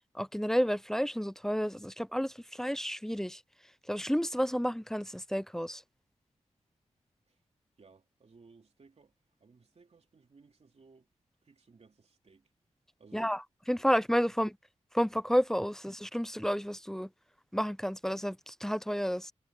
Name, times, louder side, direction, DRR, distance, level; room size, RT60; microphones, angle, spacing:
voice 1, 0.1-3.4 3.9-5.8 13.1-13.4 13.7-14.6 14.9-17.1 17.5-19.3, equal, 5° left, 0.4 m, -31 dB
voice 2, 7.8-9.1 9.4-11.1 11.4-12.5 13.0-13.4, right 4 dB, 55° right, 3.0 m, -59 dB
cardioid pair, 70°, 13 cm